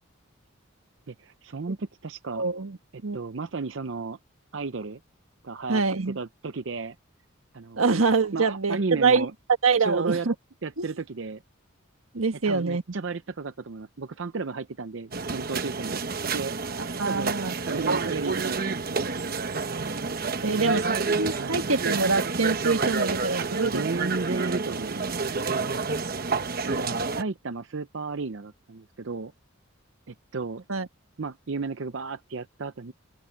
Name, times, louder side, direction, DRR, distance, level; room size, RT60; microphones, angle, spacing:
voice 1, 1.1-2.4 2.9-4.2 4.5-5.0 5.4-7.0 7.5-8.0 8.3-9.3 9.8-10.3 10.6-11.4 12.4-16.0 16.3-17.3 17.6-19.1 20.4-21.6 23.4-25.2 26.6-29.3 30.1-30.6 31.2-32.9, right 4 dB, 65° right, 0.6 m, -34 dB
voice 2, 2.4-2.8 3.0-3.2 5.7-6.2 7.8-9.3 9.6-10.3 10.8-10.9 12.1-12.8 17.0-17.5 20.4-20.9 21.2-23.8 30.7-30.9, right 4 dB, 90° right, 1.6 m, -25 dB
sound 1, 15.1-27.2, right 4 dB, 45° right, 1.0 m, -29 dB
open air
head